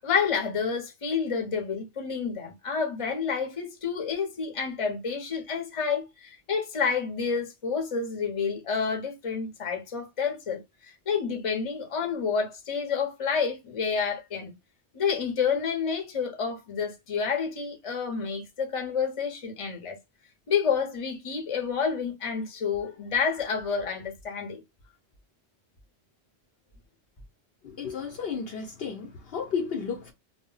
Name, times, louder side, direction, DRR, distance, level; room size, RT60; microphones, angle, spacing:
voice 1, 0.0-14.5 14.9-20.0 20.5-24.6, left 6 dB, 35° left, 0.7 m, -29 dB
voice 2, 27.6-30.1, left 6 dB, 65° left, 0.8 m, -33 dB
2.2 x 2.1 x 3.8 m
omnidirectional pair, 1.1 m